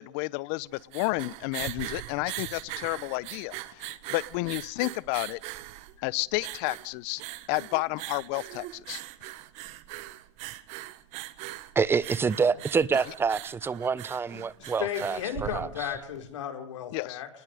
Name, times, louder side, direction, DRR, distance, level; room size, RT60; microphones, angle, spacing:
voice 1, 0.0-5.4 6.0-7.2 7.5-9.0 16.9-17.2, left 23 dB, 50° left, 0.9 m, -31 dB
sound 1, 0.6-16.1, right 16 dB, 45° right, 1.7 m, -41 dB
voice 2, 11.7-15.7, right 5 dB, 15° right, 0.9 m, -27 dB
voice 3, 14.3-17.3, left 9 dB, 80° left, 5.5 m, -35 dB
29.5 x 21.0 x 5.0 m
supercardioid pair, 130°, 16 cm